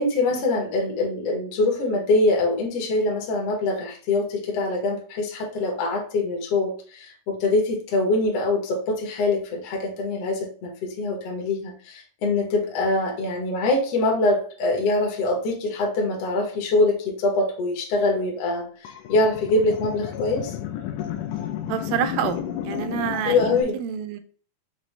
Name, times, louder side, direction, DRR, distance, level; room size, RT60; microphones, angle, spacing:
voice 1, 0.0-20.5 23.2-23.8, left 2 dB, 65° left, 1 dB, 1.5 m, -24 dB
sound 1, 18.8-23.6, left 10 dB, 80° left, 1.8 m, -32 dB
voice 2, 21.7-22.4 22.6-24.2, right 9 dB, 85° right, 9 dB, 2.2 m, -28 dB
5.9 x 2.6 x 3.2 m, 0.44 s
omnidirectional pair, 4.0 m